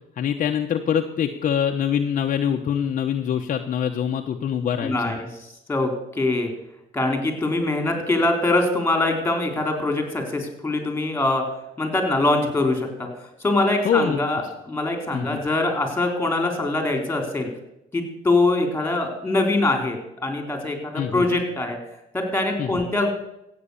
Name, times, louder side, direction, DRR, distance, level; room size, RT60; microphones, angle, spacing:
voice 1, 0.2-4.9 13.8-14.2 15.1-15.4 20.9-21.3 22.6-22.8, left 8 dB, 50° left, 4 dB, 1.0 m, -24 dB
voice 2, 4.8-5.3 5.7-6.5 6.9-11.5 11.8-13.1 13.4-17.5 17.9-21.8 22.1-23.1, left 2 dB, 10° left, 4 dB, 3.9 m, -23 dB
15.5 x 8.8 x 7.1 m, 0.85 s
cardioid pair, 110°, 17 cm